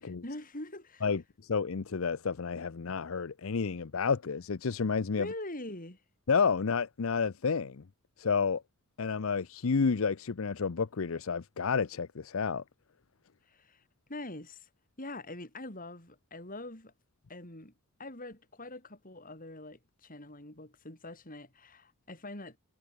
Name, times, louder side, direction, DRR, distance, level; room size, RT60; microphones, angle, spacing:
voice 1, 0.0-1.1 5.2-6.0 13.5-13.8 14.1-14.7 15.0-16.9 17.3-17.7 18.0-22.6, left 2 dB, 40° left, 7.8 m, -44 dB
voice 2, 1.0-5.3 6.3-7.8 8.2-8.6 9.0-12.6, left 5 dB, 65° left, 0.6 m, -30 dB
head